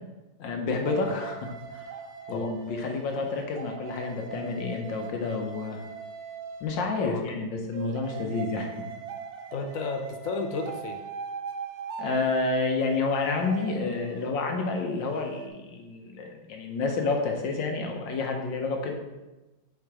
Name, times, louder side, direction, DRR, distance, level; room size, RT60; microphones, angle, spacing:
voice 1, 0.4-1.9 2.3-5.8 6.6-8.8 12.0-18.9, left 3 dB, 85° left, 3 dB, 1.6 m, -29 dB
sound 1, 0.9-7.2 7.7-15.5, right 6 dB, 70° right, 1.0 m, -40 dB
voice 2, 7.0-7.6 9.5-11.0, left 4 dB, 65° left, 6 dB, 0.9 m, -34 dB
6.9 x 3.8 x 4.8 m, 1.1 s
omnidirectional pair, 2.0 m